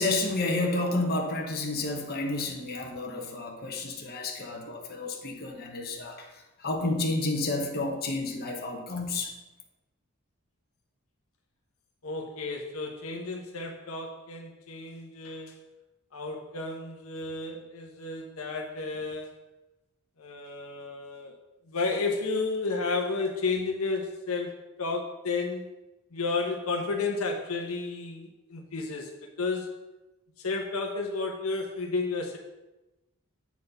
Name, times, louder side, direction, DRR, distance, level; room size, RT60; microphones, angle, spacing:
voice 1, 0.0-6.3 6.6-9.4, left 2 dB, 45° left, 1 dB, 1.1 m, -30 dB
voice 2, 12.0-15.5 16.1-19.3 20.2-21.4 21.7-25.7 26.1-29.1 29.4-29.7 30.4-32.4, left 3 dB, 70° left, 2 dB, 0.9 m, -32 dB
8.3 x 4.3 x 5.4 m, 1.0 s
head